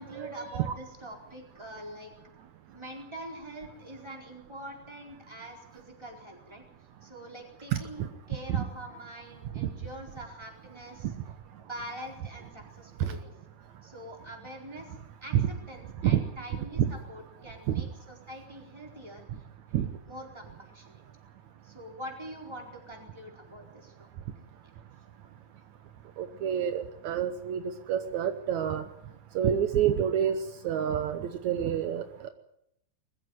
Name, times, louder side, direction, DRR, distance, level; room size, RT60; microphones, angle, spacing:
voice 1, 0.0-2.1 2.7-6.6 7.0-11.1 11.6-13.3 13.8-15.0 15.2-19.2 19.7-19.8 20.1-21.0 21.6-24.1, equal, 10° right, 2 dB, 4.2 m, -44 dB
voice 2, 26.2-27.6 27.9-28.8 29.4-30.4 30.6-32.3, right 10 dB, 75° right, 9 dB, 2.3 m, -27 dB
21.0 x 15.0 x 9.3 m, 0.77 s
omnidirectional pair, 3.4 m